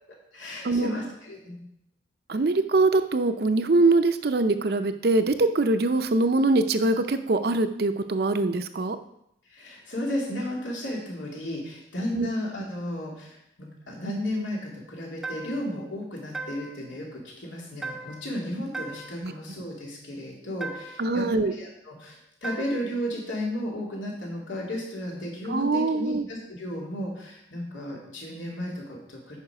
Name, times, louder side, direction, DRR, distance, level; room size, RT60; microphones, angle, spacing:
voice 1, 0.3-1.6 9.5-29.4, left 1 dB, 90° left, -2 dB, 2.6 m, -34 dB
voice 2, 2.3-9.0 12.1-12.3 19.2-19.3 21.0-21.5 25.5-26.2, right 2 dB, 55° right, 10 dB, 0.5 m, -23 dB
sound 1, 15.2-15.8 16.3-16.9 17.8-18.4 18.7-19.3 20.6-21.1 22.4-23.0, right 3 dB, ahead, 0.5 m, -38 dB
8.9 x 5.5 x 4.9 m, 0.79 s
head